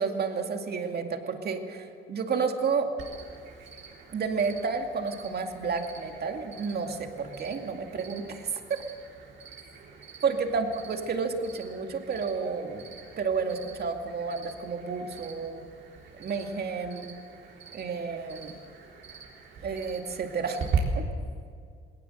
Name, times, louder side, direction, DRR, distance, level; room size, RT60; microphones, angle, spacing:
voice 1, 0.0-2.9 4.1-8.5 10.2-15.6 16.2-17.1 17.7-18.5 19.6-20.6 20.9-21.0, right 5 dB, 55° right, 4 dB, 2.3 m, -31 dB
Cricket, 3.0-20.8, right 7 dB, 70° right, 3.9 m, -41 dB
20.0 x 18.0 x 7.8 m, 2.2 s
cardioid pair, 90°, 20 cm